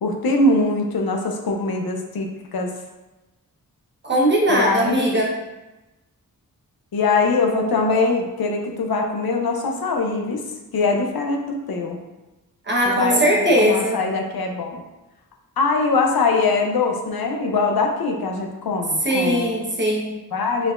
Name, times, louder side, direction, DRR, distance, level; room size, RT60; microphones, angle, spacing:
voice 1, 0.0-2.7 4.5-5.1 6.9-12.0 12.8-14.8 15.6-19.6 20.3-20.7, left 3 dB, 80° left, 2 dB, 0.7 m, -22 dB
voice 2, 4.0-5.3 12.7-14.0 19.0-20.2, equal, 30° right, -3 dB, 1.1 m, -19 dB
4.8 x 4.5 x 2.5 m, 1.0 s
wide cardioid pair, 125°, 36 cm